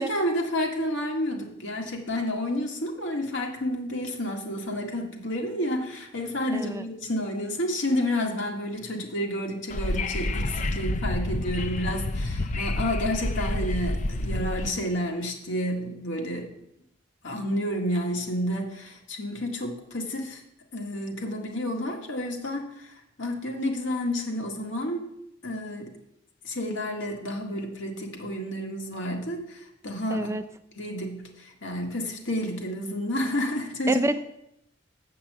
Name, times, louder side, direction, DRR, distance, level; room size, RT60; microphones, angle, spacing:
voice 1, 0.0-16.5 17.2-20.4 20.7-22.9 23.2-25.1 25.4-25.9 26.4-30.4 30.7-34.0, left 1 dB, 80° left, 2 dB, 1.9 m, -30 dB
voice 2, 6.5-6.8 30.1-30.4 33.9-34.2, right 2 dB, 15° right, 10 dB, 0.4 m, -27 dB
Wind / Subway metro underground, 9.7-14.7, left 1 dB, 40° left, 0.5 m, -29 dB
8.1 x 5.8 x 7.5 m, 0.81 s
head